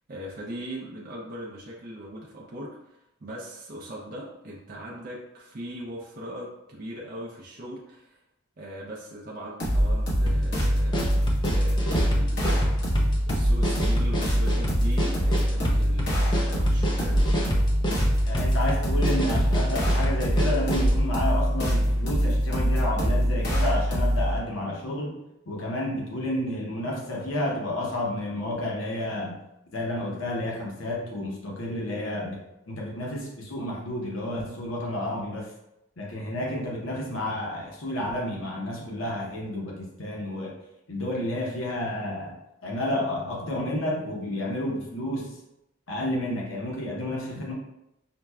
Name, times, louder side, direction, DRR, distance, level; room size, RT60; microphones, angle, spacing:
voice 1, 0.1-8.2 8.6-11.1 11.5-17.3, equal, 45° right, -3 dB, 0.4 m, -40 dB
sound 1, 9.6-24.4, equal, 55° left, 1.0 m, -24 dB
sound 2, 10.3-21.0, equal, 20° left, 0.5 m, -31 dB
voice 2, 18.2-25.2 25.5-29.4 29.7-32.4 32.7-35.5 36.0-40.5 40.9-42.4 42.6-45.3 45.9-47.5, left 1 dB, 85° left, -3 dB, 0.8 m, -30 dB
5.7 x 2.2 x 2.2 m, 0.88 s
head